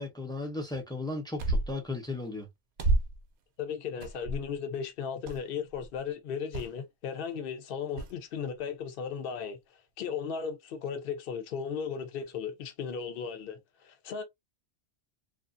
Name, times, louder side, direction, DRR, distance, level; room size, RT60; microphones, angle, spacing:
voice 1, 0.0-2.5, left 2 dB, 5° left, 0.5 m, -35 dB
sound 1, 1.4-1.9 2.8-3.3 4.0-4.6 5.3-5.4 5.7-6.0 6.5-6.7 8.0-8.1, right 2 dB, 60° right, 0.6 m, -29 dB
voice 2, 3.6-9.6 10.0-14.2, left 6 dB, 60° left, 0.8 m, -36 dB
2.4 x 2.4 x 2.4 m
omnidirectional pair, 1.1 m